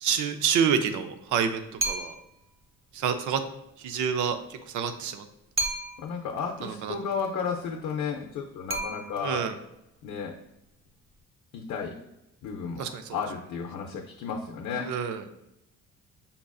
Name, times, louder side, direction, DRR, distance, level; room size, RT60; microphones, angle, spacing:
voice 1, 0.0-2.2 2.9-3.4 3.8-5.3 6.6-6.9 9.2-9.6 12.8-13.2 14.9-15.2, right 7 dB, 80° right, 8 dB, 0.5 m, -28 dB
sound 1, 1.8-2.4 5.6-6.3 8.7-9.5, right 2 dB, 45° right, 0.7 m, -32 dB
voice 2, 6.0-9.4 10.0-10.3 11.5-12.0 12.4-14.9, left 6 dB, 75° left, 1 dB, 0.6 m, -33 dB
5.3 x 2.4 x 2.3 m, 0.86 s
cardioid pair, 90°, 30 cm